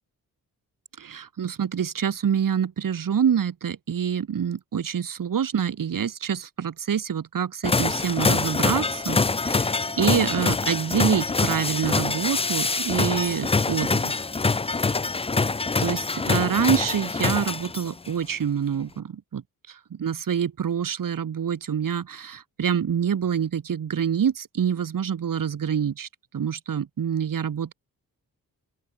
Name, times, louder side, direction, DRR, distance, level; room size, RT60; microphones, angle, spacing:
voice 1, 1.0-14.1 15.8-19.4 19.9-26.1 26.3-27.7, right 8 dB, 55° right, 1.4 m, -26 dB
sound 1, 7.6-18.1, left 3 dB, 15° left, 0.5 m, -25 dB
open air
cardioid pair, 55°, 38 cm